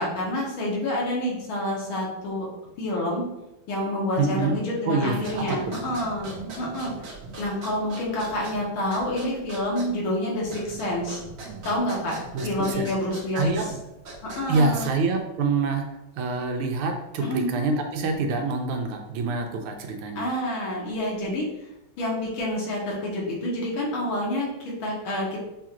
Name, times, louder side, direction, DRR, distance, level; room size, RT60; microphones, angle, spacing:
voice 1, 0.0-2.5 2.8-3.2 3.7-6.3 6.6-6.9 7.4-11.2 11.6-13.5 14.2-14.9 17.2-17.6 20.2-21.4 22.0-25.4, left 1 dB, 70° left, -3 dB, 1.9 m, -28 dB
voice 2, 4.2-4.6 4.8-5.7 12.3-12.9 13.3-13.7 14.5-15.9 16.2-20.2, right 3 dB, 85° right, 4 dB, 1.5 m, -26 dB
sound 1, 5.1-15.2, right 2 dB, 55° right, 1.3 m, -41 dB
6.2 x 2.4 x 2.9 m, 0.93 s
omnidirectional pair, 2.4 m